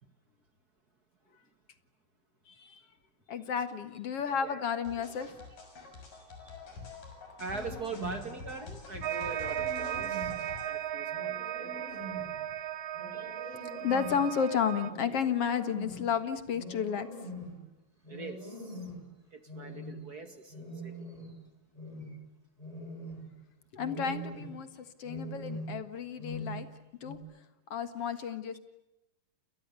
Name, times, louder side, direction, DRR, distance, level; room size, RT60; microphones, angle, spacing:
voice 1, 2.5-2.8 3.3-5.4 13.8-17.1 23.7-24.7 25.0-26.7 27.0-27.2 27.7-28.6, left 7 dB, 50° left, 11 dB, 2.2 m, -32 dB
sound 1, 4.9-10.7, left 4 dB, 70° left, 7.9 m, -47 dB
voice 2, 7.4-10.3 10.6-11.3 11.6-11.8 13.1-13.3 18.1-18.7 19.3-21.1, right 3 dB, 35° right, 8 dB, 2.0 m, -42 dB
sound 2, 7.5-8.3 9.1-10.4 11.1-12.4 12.9-14.3 14.8-16.1 16.5-17.6 18.0-19.1 19.5-20.0 20.5-21.4 21.7-22.2 22.6-23.3 23.8-24.6 25.0-25.9 26.2-26.7 27.0-27.2, right 1 dB, 10° left, 6.1 m, -43 dB
sound 3, 9.0-14.9, right 12 dB, 65° right, 2.2 m, -36 dB
29.0 x 29.0 x 7.0 m, 0.94 s
omnidirectional pair, 4.0 m